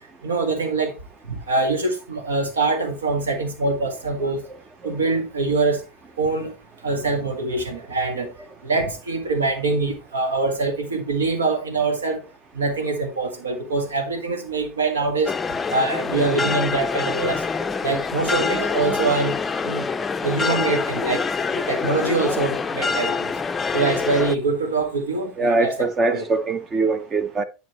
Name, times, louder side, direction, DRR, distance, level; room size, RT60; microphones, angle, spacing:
voice 1, 0.2-0.9 1.3-4.5 4.8-5.9 6.2-6.5 6.8-8.3 8.6-12.2 12.5-15.4 15.7-17.4 17.8-19.9 20.2-21.2 21.5-23.3 23.7-26.2, right 3 dB, 80° right, 1.6 m, -24 dB
sound 1, 15.3-24.3, left 5 dB, 20° left, 0.5 m, -25 dB
voice 2, 25.4-27.4, right 3 dB, 30° right, 0.7 m, -22 dB
10.5 x 5.2 x 3.1 m
figure-of-eight pair, 80°, 0 cm